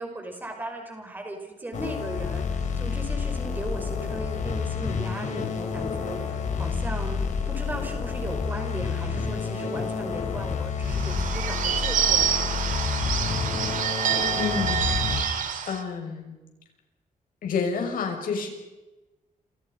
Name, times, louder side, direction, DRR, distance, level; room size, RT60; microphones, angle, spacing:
voice 1, 0.0-12.6, right 1 dB, 15° right, 3 dB, 5.6 m, -37 dB
sound 1, 1.7-15.2, left 6 dB, 60° left, 4.0 m, -29 dB
Bird / Bell, 10.8-15.8, right 8 dB, 65° right, 2.4 m, -27 dB
voice 2, 14.3-14.9 15.2-16.4 17.4-18.5, left 5 dB, 80° left, 3 dB, 6.7 m, -30 dB
28.5 x 28.5 x 5.6 m, 1.1 s
wide cardioid pair, 180°, 14 cm